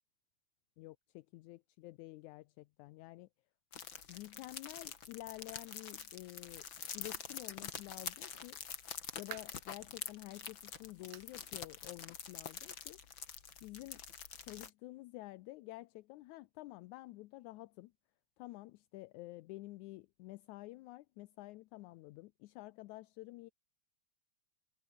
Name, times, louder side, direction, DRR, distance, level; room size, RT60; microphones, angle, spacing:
voice 1, 0.8-3.3 4.1-6.7 6.9-8.6 9.2-13.0 13.6-14.0 14.4-17.9 18.4-23.5, left 19 dB, 80° left, 2.0 m, -50 dB
sound 1, 3.7-14.7, left 7 dB, 45° left, 2.4 m, -46 dB
sound 2, 8.7-9.7 10.2-10.3 11.1-11.4 11.7-11.8 12.3-12.4 13.5-13.6, right 16 dB, 80° right, 2.2 m, -51 dB
omnidirectional pair, 3.5 m